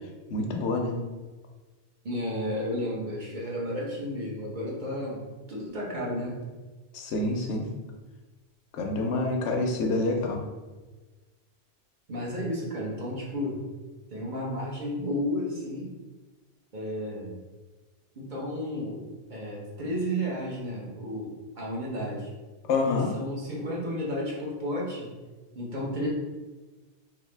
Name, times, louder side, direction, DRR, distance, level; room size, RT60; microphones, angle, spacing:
voice 1, 0.3-1.0 6.9-7.7 8.7-10.4 22.7-23.1, left 2 dB, 85° left, 3 dB, 0.9 m, -27 dB
voice 2, 2.0-5.2 5.5-6.4 12.1-13.6 14.1-15.9 16.7-17.4 18.2-22.3 22.8-25.1 25.5-26.1, equal, 45° right, -4 dB, 1.0 m, -32 dB
3.6 x 2.9 x 3.2 m, 1.2 s
omnidirectional pair, 1.2 m